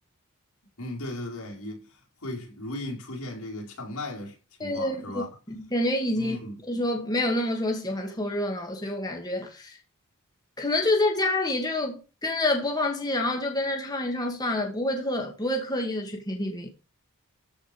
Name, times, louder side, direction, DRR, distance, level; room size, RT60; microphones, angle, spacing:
voice 1, 0.8-5.4 6.1-6.6, left 1 dB, 80° left, 5.2 m, -37 dB
voice 2, 4.6-6.4 6.7-9.8 10.6-16.7, left 1 dB, 20° left, 2.3 m, -28 dB
14.5 x 5.5 x 5.4 m
head